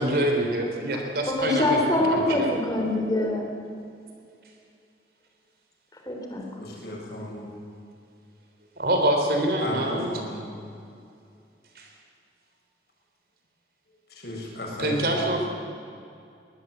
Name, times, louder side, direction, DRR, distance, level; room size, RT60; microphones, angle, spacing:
voice 1, 0.0-1.8 2.1-2.5 8.8-10.1 11.8-11.9 14.8-15.5, right 1 dB, 55° right, 2 dB, 3.6 m, -25 dB
voice 2, 1.3-3.5 6.1-6.4, left 1 dB, 20° left, 2 dB, 3.4 m, -24 dB
voice 3, 6.6-7.5 9.6-10.5 14.2-15.2, left 1 dB, 65° left, -2 dB, 7.5 m, -35 dB
23.0 x 19.5 x 8.1 m, 2.5 s
head